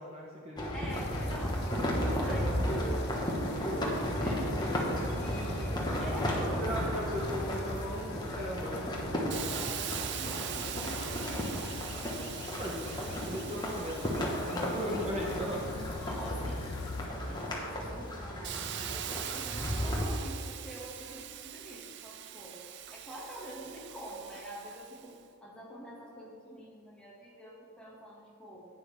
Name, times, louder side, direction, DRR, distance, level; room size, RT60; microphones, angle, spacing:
voice 1, 0.0-0.7 2.3-2.7 6.2-9.2 9.6-9.7 12.6-15.6, equal, 30° right, -3 dB, 1.0 m, -38 dB
sound 1, 0.6-20.1, equal, 20° left, 1.4 m, -34 dB
voice 2, 0.7-3.3 3.7-4.6 5.2-7.1 9.5-11.8 16.0-16.8 17.3-22.6 22.9-25.2 25.4-28.7, right 1 dB, 5° left, -6 dB, 2.1 m, -46 dB
sound 2, 0.9-17.1, left 5 dB, 50° left, 0.4 m, -46 dB
Hiss, 9.3-16.9 17.4-25.1, right 10 dB, 50° right, 0.4 m, -43 dB
11.0 x 9.4 x 3.6 m, 2.4 s
head